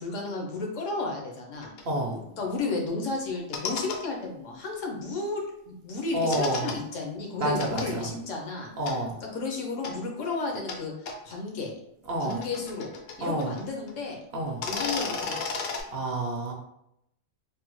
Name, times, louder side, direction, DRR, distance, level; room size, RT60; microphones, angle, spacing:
voice 1, 0.0-1.7 2.1-8.7 9.3-11.7 12.2-12.9 13.2-14.2 14.7-15.6, left 3 dB, 80° left, 1 dB, 1.1 m, -33 dB
sound 1, 1.6-1.8 3.3-4.0 6.3-6.8 7.6-7.9 8.9-9.0 9.8-9.9 10.7-10.8 11.1-11.2 12.1-13.6 13.9-14.0 14.5-15.8, left 4 dB, 65° left, 0.7 m, -33 dB
voice 2, 1.9-2.2 6.1-6.7 7.4-8.1 8.8-9.1 12.1-12.4 13.2-13.5 14.3-14.6 15.9-16.5, right 1 dB, 60° right, 0 dB, 0.8 m, -29 dB
3.4 x 2.2 x 3.0 m, 0.79 s
omnidirectional pair, 1.3 m